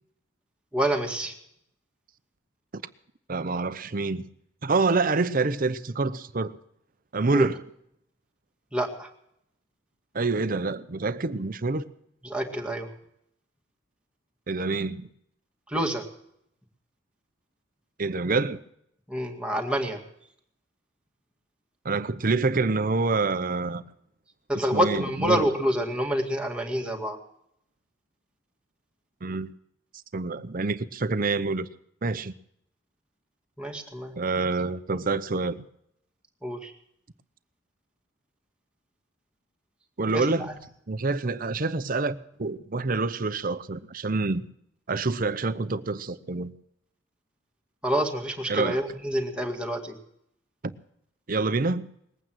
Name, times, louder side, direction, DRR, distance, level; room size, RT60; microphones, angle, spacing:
voice 1, 0.7-1.3 7.3-7.5 8.7-9.1 12.2-12.9 15.7-16.0 19.1-20.0 24.5-27.2 33.6-34.2 36.4-36.7 40.1-40.5 47.8-50.0, right 1 dB, 5° right, 2.1 m, -27 dB
voice 2, 3.3-4.2 4.6-6.6 7.1-7.6 10.1-11.8 14.5-15.1 18.0-18.6 21.8-23.8 24.7-25.4 29.2-29.5 30.1-31.7 32.0-32.3 34.2-35.6 40.0-40.5 40.9-44.4 44.9-46.5 48.5-48.8 50.6-50.7 51.3-51.9, right 3 dB, 45° right, 0.8 m, -27 dB
20.5 x 9.0 x 7.6 m
head